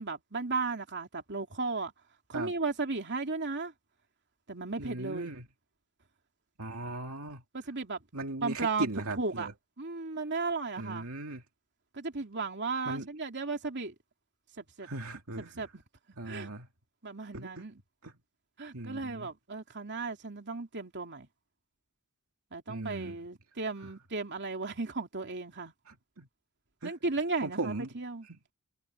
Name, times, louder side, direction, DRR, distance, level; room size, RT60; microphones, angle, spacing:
voice 1, 0.0-1.9 2.3-3.7 4.5-5.3 7.5-8.0 8.4-8.9 9.2-9.5 9.8-11.1 11.9-13.9 14.6-14.9 15.6-15.8 16.2-16.5 17.0-17.8 18.6-21.3 22.5-25.7 26.8-28.3, right 3 dB, 50° right, 3.0 m, -35 dB
voice 2, 4.8-5.5 6.6-7.4 8.1-9.5 10.8-11.4 12.9-13.1 14.8-15.7 16.2-16.7 17.3-17.6 18.0-18.1 18.7-19.3 22.7-23.2 25.9-26.3 26.8-26.9 27.4-27.9 28.3-28.4, right 2 dB, 75° right, 2.5 m, -38 dB
head